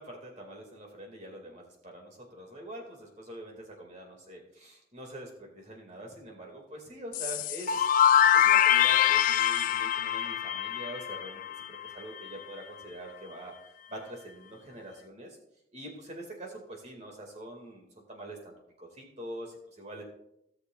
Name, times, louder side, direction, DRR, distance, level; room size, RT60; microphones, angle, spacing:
voice 1, 0.0-7.9 8.3-13.5 13.9-15.4 15.7-20.0, right 1 dB, 35° right, 1 dB, 2.3 m, -44 dB
sound 1, 7.1-11.9, left 10 dB, 45° left, 0.3 m, -24 dB
17.0 x 6.6 x 2.5 m, 0.78 s
head